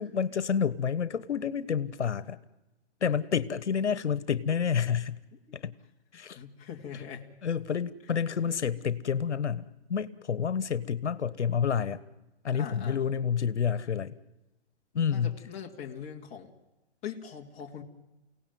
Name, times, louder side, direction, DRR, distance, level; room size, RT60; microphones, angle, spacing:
voice 1, 0.0-2.4 3.0-5.2 5.5-5.7 6.1-6.4 7.4-12.0 12.4-14.1 14.9-15.4, left 7 dB, 85° left, 16 dB, 1.4 m, -29 dB
voice 2, 6.3-7.3 12.5-13.0 15.1-16.5 17.0-17.8, left 8 dB, 20° left, 1 dB, 2.3 m, -41 dB
30.0 x 17.5 x 9.3 m, 1.0 s
hypercardioid pair, 155°, 34 cm